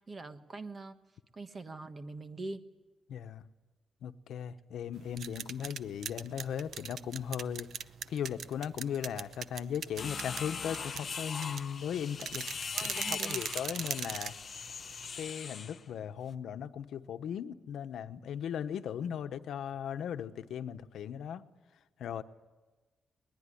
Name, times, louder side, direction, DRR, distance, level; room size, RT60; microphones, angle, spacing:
voice 1, 0.1-0.9 1.3-2.6 12.7-13.4, right 3 dB, 25° right, 9 dB, 1.3 m, -43 dB
voice 2, 3.1-3.4 4.0-7.7 8.1-12.4 12.8-14.3 15.2-21.4 22.0-22.2, left 8 dB, 90° left, 10 dB, 1.0 m, -37 dB
sound 1, 4.9-15.3, right 7 dB, 65° right, 0.7 m, -41 dB
sound 2, 10.0-15.8, left 6 dB, 40° left, 0.8 m, -41 dB
21.5 x 20.5 x 10.0 m, 1.2 s
wide cardioid pair, 165°, 0 cm